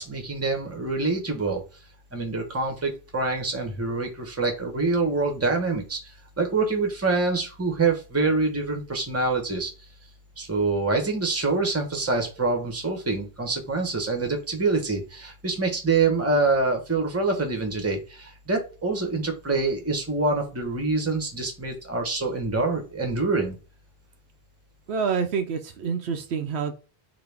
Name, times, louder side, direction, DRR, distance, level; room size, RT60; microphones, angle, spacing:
voice 1, 0.0-1.6 2.1-9.7 10.4-23.6, right 3 dB, 15° right, 3 dB, 0.8 m, -26 dB
voice 2, 24.9-26.7, right 6 dB, 75° right, 6 dB, 0.9 m, -27 dB
4.0 x 2.7 x 3.3 m, 0.34 s
omnidirectional pair, 1.1 m